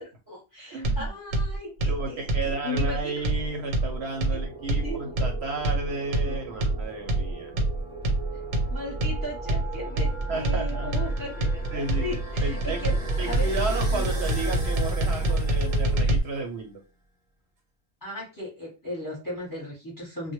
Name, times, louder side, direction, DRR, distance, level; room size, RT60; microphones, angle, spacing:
voice 1, 0.0-3.2 4.3-4.4 4.8-5.1 6.3-6.5 8.7-12.9 13.3-13.6 13.9-14.2 15.2-16.1 18.0-20.3, left 1 dB, 20° left, -3 dB, 0.8 m, -37 dB
voice 2, 0.7-1.1 1.9-7.5 10.3-11.1 11.7-12.1 12.4-16.8, right 3 dB, 65° right, 3 dB, 0.8 m, -33 dB
sound 1, 0.8-16.2, right 2 dB, 90° right, 1.0 m, -26 dB
sound 2, 2.2-16.3, right 2 dB, 30° right, 0.6 m, -35 dB
2.2 x 2.0 x 3.0 m, 0.29 s
omnidirectional pair, 1.3 m